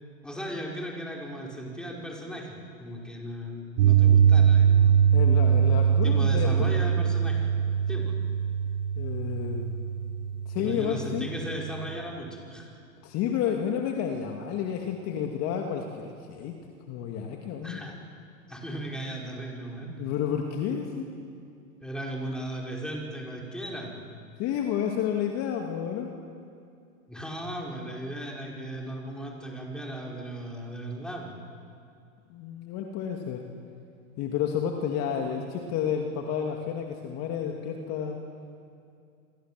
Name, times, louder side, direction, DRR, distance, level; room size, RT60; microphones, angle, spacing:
voice 1, 0.2-5.0 5.7-7.5 7.9-8.1 10.6-12.7 17.6-18.0 18.5-19.9 21.8-24.0 27.1-31.4, right 1 dB, ahead, -2 dB, 5.1 m, -37 dB
Piano, 3.8-11.9, right 8 dB, 55° right, 2.0 m, -22 dB
voice 2, 5.1-6.7 8.9-9.7 10.5-11.3 13.0-16.6 16.9-17.8 19.9-21.1 24.4-26.1 32.3-33.4 34.2-38.2, left 8 dB, 35° left, 2 dB, 2.4 m, -30 dB
27.5 x 23.5 x 7.7 m, 2.4 s
hypercardioid pair, 120°, 42 cm